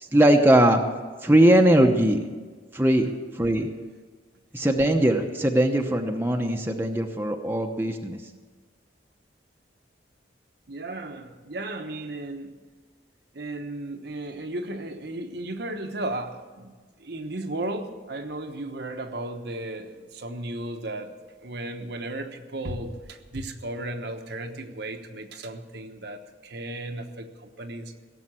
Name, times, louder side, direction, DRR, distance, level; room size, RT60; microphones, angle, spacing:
voice 1, 0.1-0.8 1.2-2.2 2.7-3.1 3.3-3.7 4.5-8.2, right 1 dB, 10° right, 3 dB, 0.9 m, -20 dB
voice 2, 10.7-12.6 13.3-16.7 17.0-21.1 21.4-27.9, right 2 dB, 60° right, 5 dB, 1.1 m, -35 dB
17.0 x 7.4 x 8.9 m, 1.4 s
head